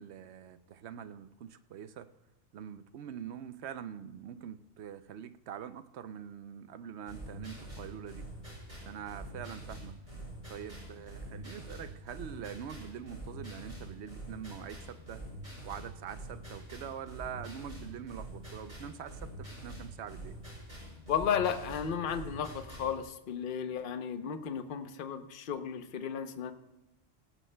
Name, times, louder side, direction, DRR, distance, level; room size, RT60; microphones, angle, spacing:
voice 1, 0.0-2.1 2.5-8.3 8.8-10.0 10.5-15.3 15.6-20.3, right 9 dB, 70° right, 12 dB, 0.8 m, -44 dB
sound 1, 7.1-23.0, right 1 dB, 35° right, 5.6 m, -45 dB
voice 2, 21.1-26.5, left 7 dB, 50° left, 9 dB, 0.8 m, -34 dB
17.5 x 16.0 x 2.2 m, 0.98 s
omnidirectional pair, 1.3 m